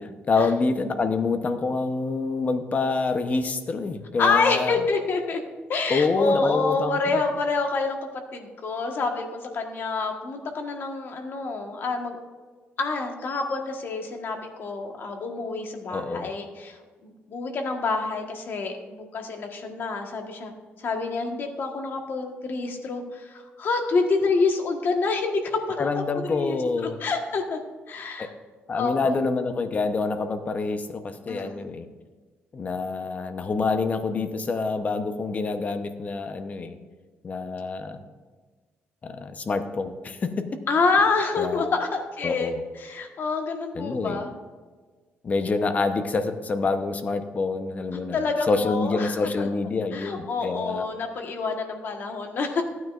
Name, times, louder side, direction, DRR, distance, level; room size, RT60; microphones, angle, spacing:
voice 1, 0.0-4.8 5.9-7.2 15.9-16.3 25.8-27.0 28.2-28.3 28.7-31.9 32.5-36.8 37.2-38.0 39.0-40.5 41.4-41.7 42.2-42.6 43.7-44.2 45.2-50.9, left 4 dB, 35° left, 8 dB, 0.8 m, -27 dB
voice 2, 4.2-5.4 5.7-8.0 8.3-12.2 12.8-16.8 17.0-20.5 20.8-25.9 26.3-26.6 27.0-27.6 27.9-28.3 28.7-29.2 31.3-31.7 40.7-42.5 42.7-44.3 47.9-49.5 49.9-52.6, left 4 dB, 55° left, 4 dB, 1.4 m, -27 dB
15.0 x 9.3 x 2.5 m, 1.4 s
cardioid pair, 115°, 4 cm